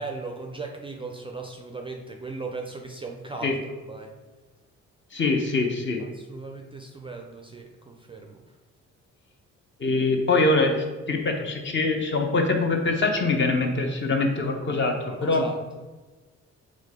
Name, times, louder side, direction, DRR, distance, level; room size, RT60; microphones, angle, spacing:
voice 1, 0.0-3.6 3.9-4.1 6.0-8.4 15.1-15.5, right 3 dB, 20° right, 2 dB, 0.3 m, -37 dB
voice 2, 5.1-6.0 9.8-14.9 15.2-15.4, left 3 dB, 40° left, 3 dB, 0.7 m, -23 dB
3.8 x 3.1 x 3.5 m, 1.2 s
cardioid pair, 90°, 30 cm